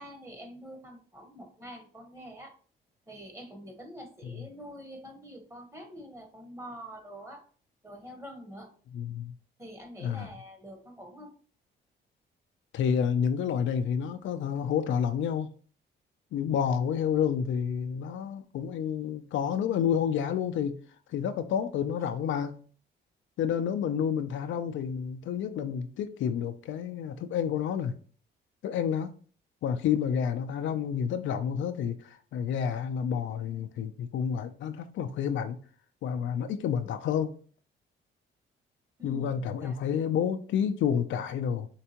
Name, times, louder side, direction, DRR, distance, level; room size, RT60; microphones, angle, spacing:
voice 1, 0.0-2.5 3.1-7.4 7.8-8.7 9.6-11.3 39.0-39.8, equal, 15° right, 1.1 m, -46 dB
voice 2, 8.9-9.3 10.0-10.3 12.7-15.5 16.3-20.8 21.1-22.6 23.4-27.9 28.6-29.1 29.6-35.6 36.0-37.3 39.0-41.7, left 8 dB, 75° left, 0.5 m, -29 dB
4.5 x 3.3 x 2.9 m
cardioid pair, 90°, 20 cm